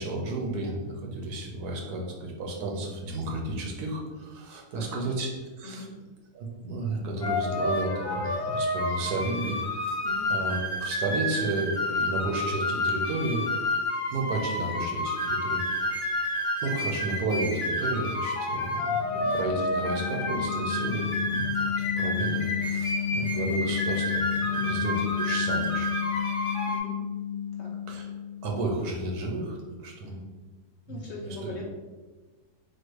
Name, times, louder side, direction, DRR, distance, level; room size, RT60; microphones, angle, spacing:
voice 1, 0.0-5.9 6.3-10.0 10.3-13.5 14.1-15.9 16.6-21.7 22.0-25.9 27.9-28.1 28.4-30.1 30.9-31.0 31.4-31.5, right 2 dB, 85° right, 1 dB, 1.4 m, -32 dB
voice 2, 4.7-5.1 5.6-5.9 10.0-10.3 19.0-19.2 24.5-24.8 26.7-26.9 27.6-27.7 30.0-30.3 30.9-31.6, left 2 dB, 60° left, -2 dB, 0.8 m, -41 dB
sound 1, 7.2-26.8, left 1 dB, 35° left, 1.2 m, -30 dB
sound 2, 18.7-28.9, left 9 dB, 60° right, 1.1 m, -32 dB
4.4 x 2.3 x 4.6 m, 1.3 s
omnidirectional pair, 1.7 m